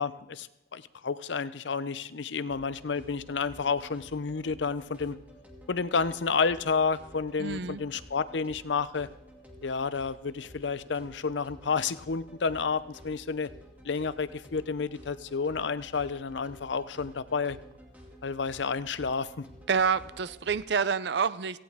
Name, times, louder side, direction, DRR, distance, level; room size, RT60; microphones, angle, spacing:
voice 1, 0.0-5.2 5.7-9.1 9.6-13.5 13.8-17.6 18.2-19.5, left 5 dB, 75° left, 15 dB, 0.6 m, -30 dB
sound 1, 2.5-20.6, equal, 10° right, 2.4 m, -52 dB
voice 2, 7.4-7.8 19.7-21.6, right 6 dB, 65° right, 16 dB, 0.5 m, -28 dB
17.5 x 15.5 x 3.6 m, 0.90 s
head